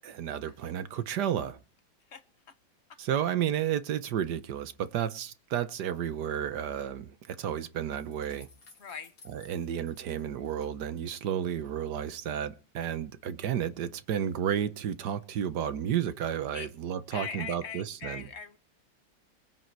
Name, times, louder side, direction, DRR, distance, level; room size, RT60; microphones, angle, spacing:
voice 1, 0.0-1.6 3.0-8.5 9.3-18.3, right 9 dB, 65° right, 1.4 m, -32 dB
voice 2, 2.1-2.5 2.9-3.0 8.8-9.1 16.5-16.7 17.1-18.6, left 6 dB, 45° left, 1.0 m, -41 dB
sound 1, 7.9-11.3 11.6-12.3, left 4 dB, 80° left, 3.5 m, -59 dB
21.0 x 9.3 x 4.6 m
omnidirectional pair, 2.1 m